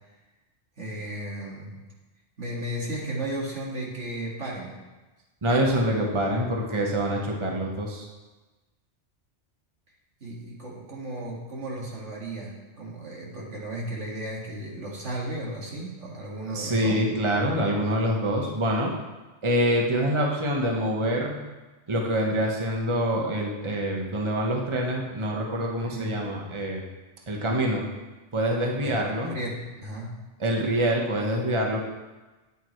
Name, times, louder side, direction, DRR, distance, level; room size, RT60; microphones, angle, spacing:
voice 1, 0.8-1.7 2.4-4.8 10.2-17.0 25.8-26.1 28.8-28.9 29.3-30.2, right 1 dB, 70° right, -3 dB, 2.5 m, -34 dB
voice 2, 5.4-8.0 16.5-18.9 19.4-21.4 21.9-26.8 27.3-27.8 28.3-29.3 30.4-31.8, equal, 25° right, -1 dB, 1.2 m, -25 dB
13.5 x 9.4 x 3.2 m, 1.2 s
omnidirectional pair, 1.2 m